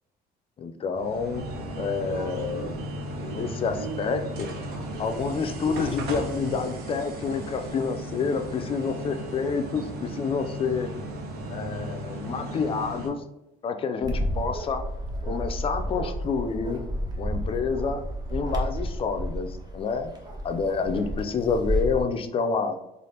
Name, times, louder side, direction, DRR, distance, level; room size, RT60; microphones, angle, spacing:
voice 1, 0.6-2.9 3.3-4.5 5.0-10.9 11.5-13.2 13.6-14.8 15.2-16.8 17.2-18.0 18.3-20.1 20.4-22.8, left 5 dB, 35° left, 7 dB, 0.4 m, -28 dB
sound 1, 0.9-13.1, right 1 dB, 70° right, 0.7 m, -35 dB
Bark, 14.0-22.0, equal, 25° right, 0.6 m, -31 dB
3.2 x 2.4 x 2.7 m, 0.90 s
cardioid pair, 110°, 17 cm